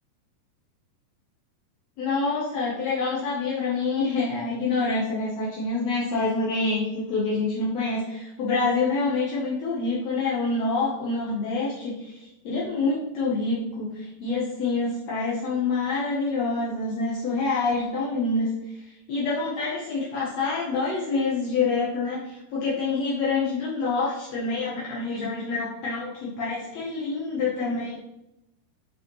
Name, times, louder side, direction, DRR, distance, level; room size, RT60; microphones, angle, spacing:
voice 1, 2.0-28.0, left 3 dB, 70° left, -6 dB, 1.7 m, -27 dB
9.9 x 4.9 x 3.2 m, 0.88 s
omnidirectional pair, 4.6 m